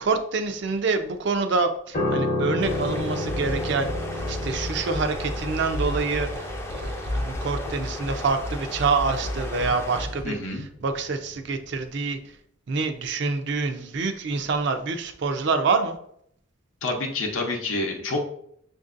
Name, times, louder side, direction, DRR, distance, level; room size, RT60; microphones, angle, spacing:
voice 1, 0.0-3.9 4.3-12.2 12.7-16.0, right 4 dB, 60° right, 7 dB, 0.4 m, -26 dB
Piano, 1.9-11.3 11.6-11.8, left 1 dB, 40° left, 0.8 m, -32 dB
sound 1, 2.6-10.1, left 1 dB, 15° left, 0.4 m, -37 dB
sound 2, 2.6-10.2, left 1 dB, 85° right, 0.8 m, -33 dB
voice 2, 10.2-10.6 16.8-18.2, left 2 dB, 85° left, 2 dB, 0.7 m, -28 dB
6.5 x 2.6 x 2.5 m, 0.69 s
head